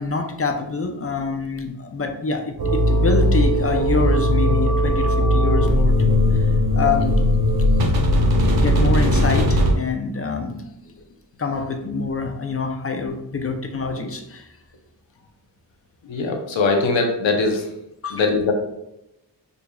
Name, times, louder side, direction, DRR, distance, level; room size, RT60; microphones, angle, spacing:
voice 1, 0.0-6.5 6.7-7.2 7.9-8.0 8.5-11.0 11.4-14.5 18.0-18.3, left 4 dB, 35° left, 5 dB, 0.6 m, -26 dB
sound 1, 2.6-9.7, left 1 dB, 55° right, 0.9 m, -18 dB
voice 2, 16.1-17.7 18.1-18.5, left 3 dB, 90° left, 2 dB, 0.9 m, -21 dB
6.5 x 2.6 x 2.3 m, 0.86 s
cardioid pair, 70°, 44 cm